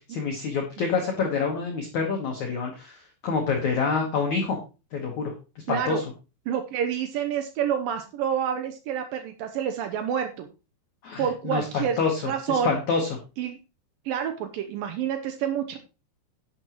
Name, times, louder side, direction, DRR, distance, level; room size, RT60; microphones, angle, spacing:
voice 1, 0.1-4.6 4.9-5.3 5.7-6.0 11.0-12.2 12.5-13.1, left 5 dB, 65° left, 1 dB, 2.0 m, -27 dB
voice 2, 5.7-6.0 6.5-10.5 11.2-12.0 12.2-12.8 13.4-13.6 14.1-15.8, right 8 dB, 85° right, 7 dB, 2.0 m, -28 dB
11.0 x 9.6 x 3.0 m, 0.30 s
omnidirectional pair, 5.3 m